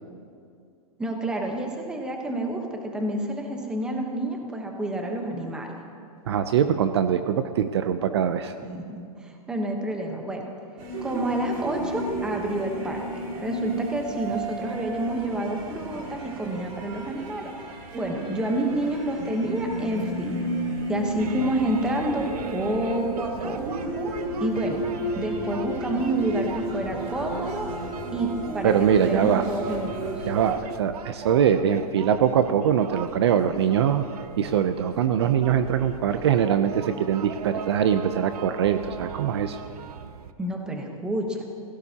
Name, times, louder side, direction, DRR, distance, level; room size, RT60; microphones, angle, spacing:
voice 1, 1.0-5.7 8.6-10.4 11.0-13.0 13.4-17.5 17.9-20.4 20.9-23.6 24.4-24.8 25.2-27.7 28.1-30.2 40.4-41.4, right 1 dB, 5° right, 2 dB, 1.0 m, -29 dB
voice 2, 6.3-8.5 28.6-29.4 30.3-34.0 34.4-39.6, right 8 dB, 45° right, 9 dB, 0.6 m, -22 dB
sound 1, 10.8-30.5, right 1 dB, 25° right, 2.2 m, -33 dB
sound 2, 21.2-40.3, right 8 dB, 85° right, 0.8 m, -39 dB
28.5 x 16.5 x 2.9 m, 2.3 s
supercardioid pair, 180°, 19 cm